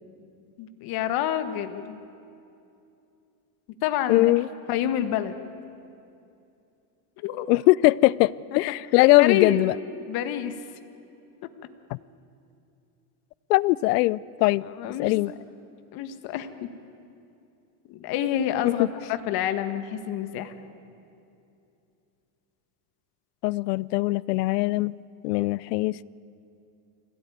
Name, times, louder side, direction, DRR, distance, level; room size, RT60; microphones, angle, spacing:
voice 1, 0.6-2.0 3.8-4.3 4.7-5.4 7.2-7.5 9.2-9.7 10.1-10.6 14.6-15.3 15.9-16.7 17.9-20.5, left 10 dB, 50° left, 9 dB, 1.7 m, -28 dB
voice 2, 4.1-4.5 7.5-9.7 11.9-12.0 13.5-14.6 15.0-15.3 18.6-18.9 23.4-24.9 25.2-26.0, left 19 dB, 85° left, 22 dB, 0.6 m, -21 dB
25.5 x 16.5 x 9.4 m, 2.7 s
supercardioid pair, 140°, 46 cm